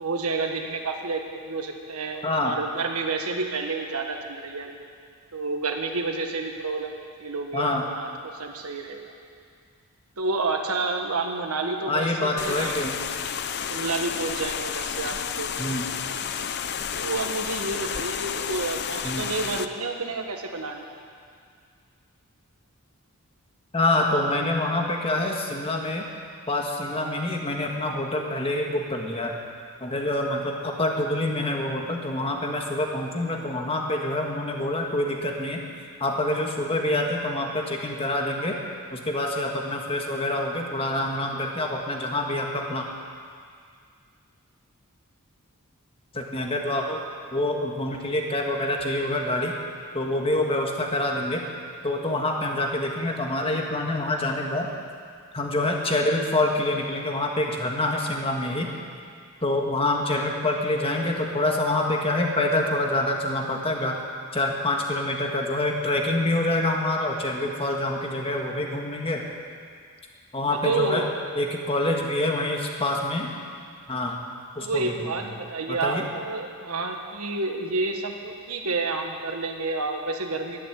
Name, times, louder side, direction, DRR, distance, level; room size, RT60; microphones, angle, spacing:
voice 1, 0.0-4.7 5.3-9.1 10.2-12.7 13.6-16.5 16.9-20.9 70.5-71.1 74.6-80.6, right 3 dB, 85° right, 3 dB, 1.6 m, -30 dB
voice 2, 2.2-2.6 7.5-7.9 11.9-13.0 15.6-15.9 19.0-19.3 23.7-26.1 26.5-29.4 29.8-35.6 36.0-38.6 38.9-42.9 46.1-47.0 47.3-49.5 49.9-51.4 51.8-54.7 55.3-58.7 59.4-64.0 64.3-69.2 70.3-71.1 71.3-73.3 73.9-74.2 74.5-75.1 75.7-76.1, left 1 dB, 25° left, 1 dB, 1.6 m, -26 dB
sound 1, 12.4-19.7, left 8 dB, 50° left, 0.6 m, -31 dB
12.5 x 10.5 x 9.4 m, 2.1 s
head